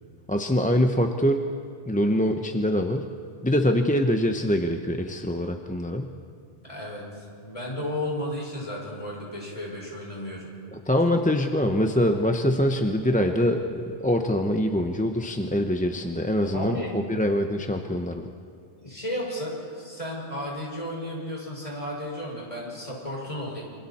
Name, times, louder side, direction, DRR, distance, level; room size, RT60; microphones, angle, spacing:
voice 1, 0.3-1.5 1.9-3.1 3.4-6.1 10.7-18.3, equal, 10° left, 4 dB, 0.8 m, -24 dB
voice 2, 6.6-10.5 16.5-16.9 18.8-23.6, left 1 dB, 30° left, -4 dB, 6.0 m, -33 dB
28.0 x 25.5 x 4.3 m, 2.3 s
omnidirectional pair, 1.1 m